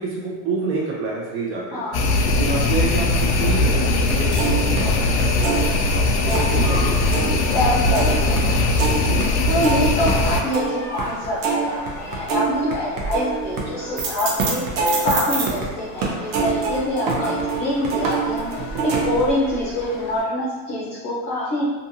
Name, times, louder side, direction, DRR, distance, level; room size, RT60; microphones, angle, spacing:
voice 1, 0.0-1.8 2.2-5.5 5.9-7.2 9.0-9.2 15.4-15.5, right 4 dB, 30° right, -4 dB, 0.8 m, -29 dB
voice 2, 1.7-2.2 6.2-6.8 7.5-9.0 9.5-14.6 15.0-18.5 18.8-21.6, left 1 dB, 25° left, -9 dB, 0.8 m, -25 dB
sound 1, 1.9-10.4, left 2 dB, 75° left, 0.5 m, -20 dB
sound 2, 2.4-20.2, equal, 5° left, 1.4 m, -37 dB
sound 3, 4.0-6.8 7.0-15.7 16.0-19.3, right 4 dB, 70° right, 0.8 m, -25 dB
2.5 x 2.5 x 2.7 m, 1.2 s
supercardioid pair, 145°, 43 cm